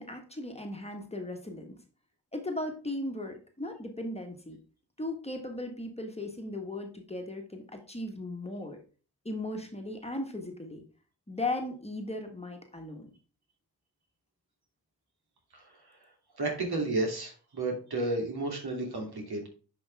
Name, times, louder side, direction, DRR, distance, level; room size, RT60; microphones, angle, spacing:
voice 1, 0.0-1.8 2.3-4.6 5.0-8.8 9.2-10.8 11.3-13.1, left 2 dB, 15° left, 3 dB, 1.6 m, -37 dB
voice 2, 16.4-19.5, right 2 dB, 65° right, 1 dB, 3.0 m, -32 dB
10.0 x 5.3 x 3.5 m, 0.37 s
cardioid pair, 90°, 41 cm